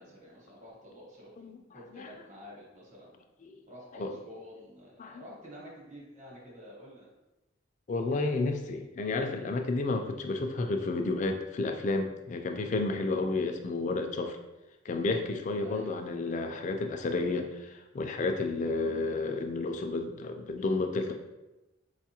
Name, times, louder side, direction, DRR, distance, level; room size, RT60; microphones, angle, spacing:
voice 1, 0.0-1.3 1.7-3.1 3.7-7.1 15.6-15.9, left 1 dB, 40° right, -4 dB, 1.1 m, -49 dB
voice 2, 7.9-14.4 14.8-21.1, left 3 dB, 40° left, 4 dB, 0.3 m, -31 dB
4.5 x 2.3 x 2.8 m, 1.0 s
head